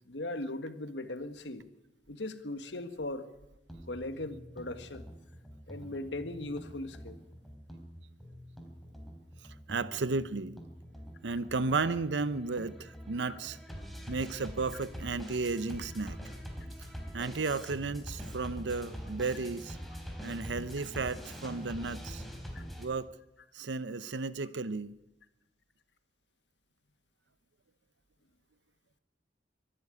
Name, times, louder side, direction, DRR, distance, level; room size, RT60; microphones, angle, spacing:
voice 1, 0.1-1.6 2.1-3.3 3.9-5.1 5.7-7.2 22.5-22.6, left 2 dB, 80° left, 10 dB, 1.7 m, -38 dB
sound 1, 3.7-22.9, equal, ahead, 3.8 m, -45 dB
voice 2, 9.4-10.6 11.2-13.6 14.1-16.2 16.8-19.8 20.2-22.2 22.8-23.1 23.5-24.9, right 4 dB, 90° right, 16 dB, 0.7 m, -34 dB
24.0 x 11.5 x 9.6 m, 0.92 s
head